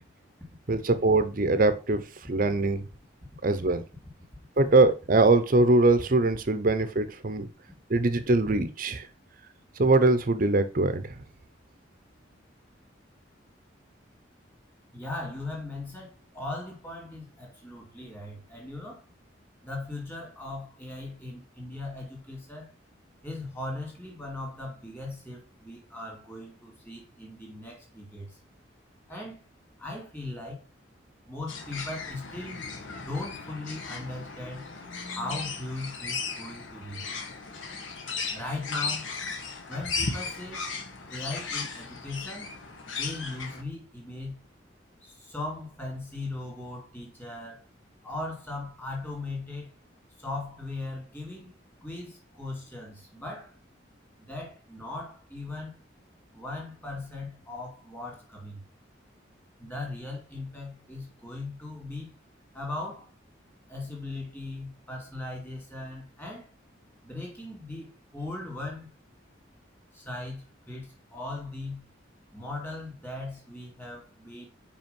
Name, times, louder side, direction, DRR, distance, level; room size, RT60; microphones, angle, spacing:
voice 1, 0.7-2.8 3.4-3.8 4.6-7.5 7.9-9.1 9.8-11.2, right 2 dB, 45° right, 0.7 m, -22 dB
voice 2, 14.9-19.0 19.6-22.7 23.2-28.4 29.1-29.4 29.8-30.6 31.3-34.7 35.1-37.0 38.3-39.1 39.7-40.7 41.1-42.5 42.8-44.4 45.0-47.6 48.0-49.7 50.2-53.5 54.2-55.8 56.3-58.6 59.6-62.1 62.5-63.1 63.7-66.5 67.0-68.9 69.9-71.8 72.3-74.5, left 2 dB, 10° left, 2.5 m, -38 dB
sound 1, 31.5-43.6, left 4 dB, 80° left, 1.3 m, -36 dB
5.3 x 5.0 x 5.2 m
head